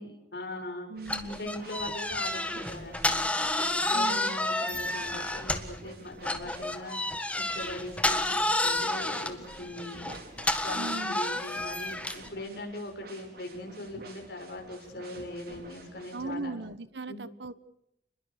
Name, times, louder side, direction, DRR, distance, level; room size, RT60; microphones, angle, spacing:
voice 1, 0.0-0.9 1.2-3.2 3.6-7.0 7.3-10.1 10.6-16.5 17.1-17.2, left 1 dB, 65° left, 3 dB, 6.4 m, -40 dB
sound 1, 0.9-16.3, right 2 dB, 60° right, 5.1 m, -50 dB
voice 2, 0.9-1.5 3.9-4.4 10.7-11.2 16.1-17.5, right 2 dB, 80° right, 14 dB, 1.4 m, -38 dB
sound 2, 1.1-5.8 6.2-12.3, left 1 dB, 5° left, 1.6 m, -30 dB
29.5 x 21.5 x 6.8 m, 0.78 s
head